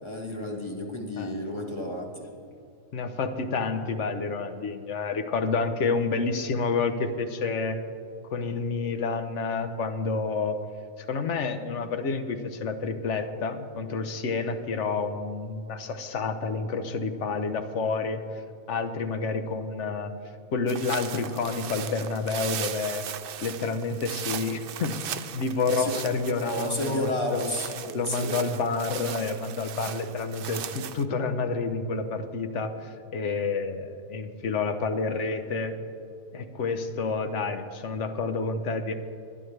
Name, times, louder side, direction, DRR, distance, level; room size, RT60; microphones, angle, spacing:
voice 1, 0.0-2.3 25.8-26.0 26.4-28.3, left 1 dB, 20° left, 0 dB, 1.7 m, -32 dB
voice 2, 2.9-7.8 8.3-10.6 11.1-18.2 18.7-20.1 20.5-23.0 23.4-25.0 25.3-27.5 27.9-35.7 36.3-38.9, left 4 dB, 60° left, 9 dB, 1.2 m, -29 dB
sound 1, 20.7-31.0, right 9 dB, 65° right, 0.5 m, -38 dB
21.0 x 11.0 x 3.3 m, 2.6 s
omnidirectional pair, 1.5 m